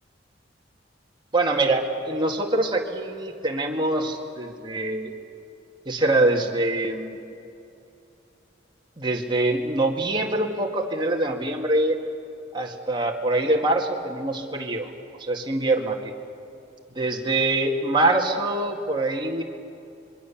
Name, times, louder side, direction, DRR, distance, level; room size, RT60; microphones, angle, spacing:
voice 1, 1.3-5.1 5.9-7.2 9.0-12.0 12.5-14.9 15.2-16.1 17.0-19.4, right 2 dB, 25° right, 1 dB, 2.0 m, -24 dB
26.0 x 22.5 x 7.2 m, 2.7 s
head